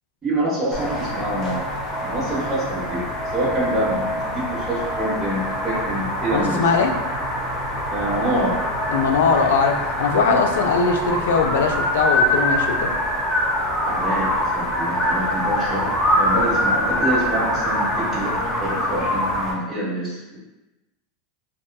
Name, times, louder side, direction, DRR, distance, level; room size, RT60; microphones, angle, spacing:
voice 1, 0.2-1.6 2.0-3.0 3.3-6.7 7.9-8.5 10.2-10.4 13.8-20.4, right 1 dB, 15° right, -9 dB, 0.8 m, -26 dB
sound 1, 0.7-19.5, equal, 30° left, 0.7 m, -24 dB
voice 2, 6.3-6.9 8.9-12.9, left 5 dB, 90° left, 4 dB, 0.3 m, -20 dB
2.8 x 2.2 x 2.2 m, 1.1 s
supercardioid pair, 135°, 0 cm